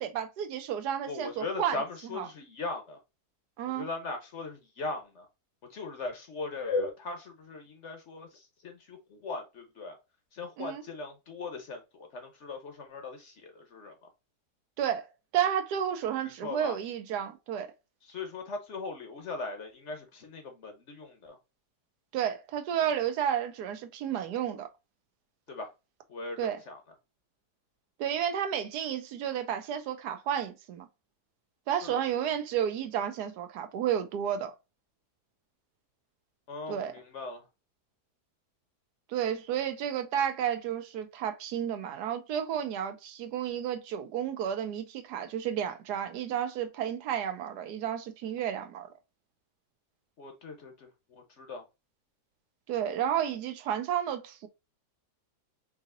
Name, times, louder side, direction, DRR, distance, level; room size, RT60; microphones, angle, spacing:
voice 1, 0.0-1.8 2.2-2.3 3.6-3.9 10.6-10.8 14.8-15.1 15.3-17.7 22.1-24.7 26.4-26.6 28.0-30.9 31.7-34.5 36.7-36.9 39.1-48.9 52.7-54.5, right 9 dB, 80° right, 1.2 m, -31 dB
voice 2, 1.1-3.0 3.7-5.3 5.7-10.0 10.3-14.1 16.2-16.8 18.0-21.4 25.5-25.7 26.1-26.8 31.7-32.3 36.5-37.5 50.2-51.6, left 3 dB, 55° left, 0.9 m, -39 dB
4.9 x 2.7 x 2.4 m
omnidirectional pair, 1.8 m